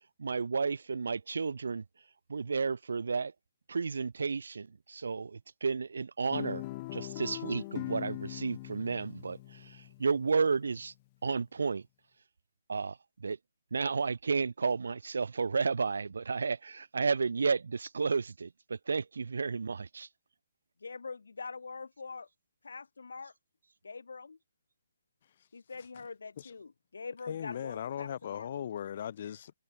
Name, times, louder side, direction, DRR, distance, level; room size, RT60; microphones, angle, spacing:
voice 1, 0.2-1.8 2.3-3.3 3.7-6.6 6.9-10.9 11.2-11.8 12.7-13.4 13.7-20.1, right 5 dB, 80° right, 1.1 m, -32 dB
Guitar, 6.3-10.7, left 19 dB, 35° left, 1.9 m, -41 dB
voice 2, 20.8-22.3 22.6-23.3 23.8-24.4 25.5-28.5, left 4 dB, 85° left, 0.9 m, -44 dB
voice 3, 27.3-29.5, left 9 dB, 50° left, 0.9 m, -38 dB
hypercardioid pair, 145°, 0 cm